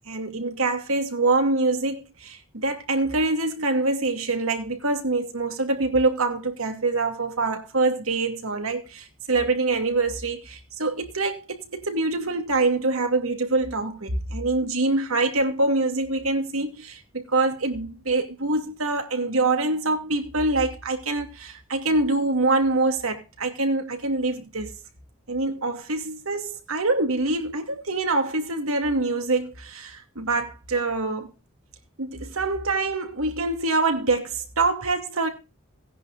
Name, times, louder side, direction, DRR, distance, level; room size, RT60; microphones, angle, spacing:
voice 1, 0.1-24.7 25.3-31.3 32.0-35.3, right 3 dB, 85° right, 2.6 m, -25 dB
18.0 x 10.5 x 2.5 m
head